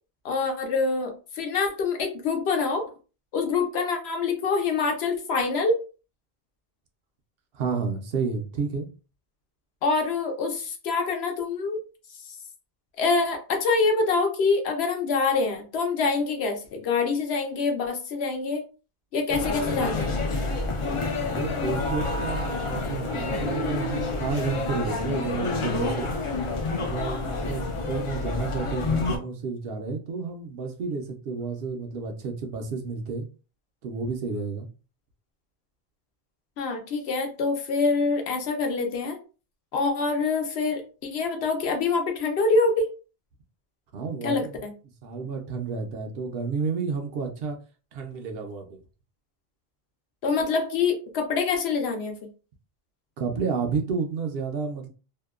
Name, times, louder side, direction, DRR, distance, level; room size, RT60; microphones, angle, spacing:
voice 1, 0.2-2.8 3.3-5.8 9.8-11.8 13.0-18.6 19.1-20.1 36.6-39.2 39.7-42.9 44.2-44.7 50.2-52.3, left 4 dB, 75° left, 0.9 m, -25 dB
voice 2, 7.5-8.9 21.2-26.1 26.7-33.3 33.8-34.7 43.9-44.6 45.0-47.6 47.9-48.8 53.2-54.9, right 5 dB, 70° right, 0.8 m, -31 dB
sound 1, 19.3-29.2, left 3 dB, 50° left, 0.4 m, -28 dB
2.7 x 2.1 x 2.3 m
omnidirectional pair, 1.1 m